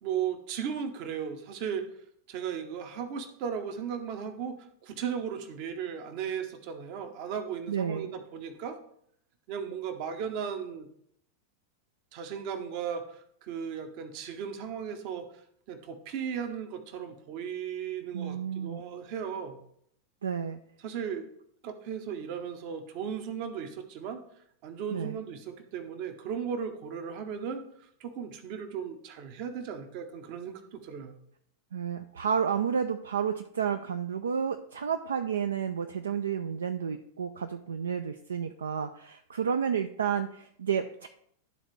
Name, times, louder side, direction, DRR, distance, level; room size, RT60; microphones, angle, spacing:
voice 1, 0.0-1.9 2.3-8.8 9.5-10.9 12.1-15.3 15.7-19.6 20.8-21.3 21.6-24.2 24.6-27.6 28.0-31.1, right 7 dB, 45° right, 8 dB, 0.8 m, -36 dB
voice 2, 7.7-8.1 18.1-18.9 20.2-20.6 24.9-25.2 31.7-41.1, right 7 dB, 70° right, 8 dB, 0.3 m, -31 dB
11.5 x 3.9 x 3.2 m, 0.69 s
figure-of-eight pair, 90°, 0 cm